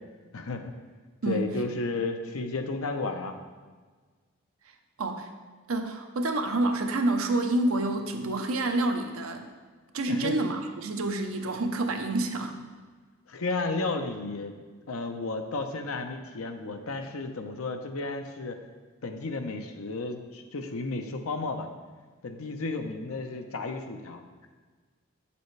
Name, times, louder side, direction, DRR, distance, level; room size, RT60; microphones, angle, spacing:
voice 1, 0.3-0.7 1.3-3.4 10.1-10.3 13.3-14.5 14.9-18.6 19.0-21.7 22.2-24.2, left 3 dB, 80° left, 6 dB, 0.7 m, -33 dB
voice 2, 5.0-5.3 5.7-9.5 9.9-12.6, right 2 dB, 80° right, 6 dB, 0.7 m, -28 dB
7.9 x 6.9 x 3.2 m, 1.5 s
head